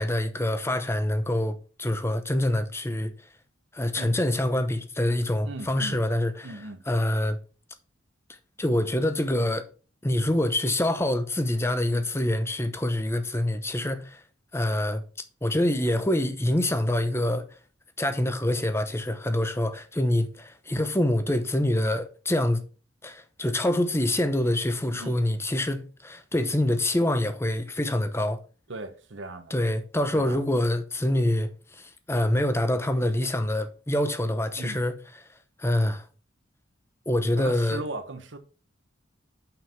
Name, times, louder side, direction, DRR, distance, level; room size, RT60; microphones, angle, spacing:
voice 1, 0.0-3.1 3.7-7.4 8.6-9.7 10.0-14.2 14.5-15.0 15.4-17.6 18.0-22.6 23.0-28.4 29.5-34.9 35.6-36.1 37.1-37.8, left 1 dB, 15° left, 0.8 m, -26 dB
voice 2, 5.4-6.0 6.4-6.8 24.9-25.2 28.7-29.5 30.1-30.4 34.6-34.8 37.4-38.4, right 2 dB, 65° right, 1.0 m, -37 dB
5.8 x 5.5 x 5.7 m
head